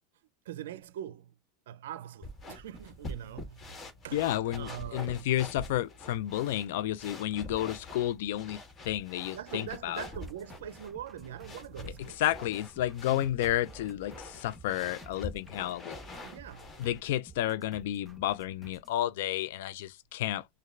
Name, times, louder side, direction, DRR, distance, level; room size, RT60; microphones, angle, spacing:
voice 1, 0.4-1.3 1.7-4.3 4.6-5.3 9.3-12.2 13.1-13.3 15.6-15.7 16.2-16.8, right 10 dB, 85° right, 0.4 m, -43 dB
sound 1, 2.2-17.0, left 2 dB, 25° left, 1.5 m, -46 dB
voice 2, 4.1-10.0 12.2-16.0 16.8-20.5, left 13 dB, 75° left, 0.4 m, -31 dB
sound 2, 10.0-19.0, right 1 dB, ahead, 1.2 m, -54 dB
6.5 x 2.2 x 2.4 m
supercardioid pair, 115°, 0 cm